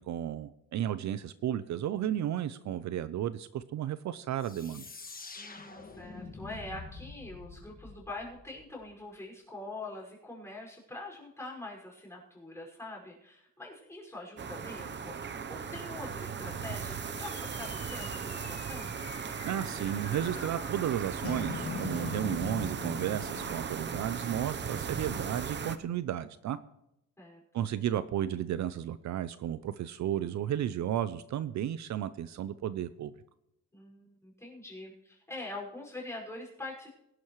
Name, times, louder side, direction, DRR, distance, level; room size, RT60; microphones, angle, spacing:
voice 1, 0.0-4.8 19.4-26.6 27.5-33.1, right 11 dB, 60° right, 14 dB, 0.6 m, -33 dB
sound 1, 4.4-9.0, left 4 dB, 25° left, 1.5 m, -47 dB
voice 2, 5.4-19.0 27.2-27.7 33.7-36.9, left 2 dB, 10° left, -2 dB, 5.5 m, -44 dB
sound 2, 14.4-25.8, right 6 dB, 35° right, 0.8 m, -37 dB
sound 3, 17.2-25.8, left 5 dB, 75° left, 3.2 m, -43 dB
22.5 x 11.5 x 3.1 m, 0.83 s
cardioid pair, 135°, 31 cm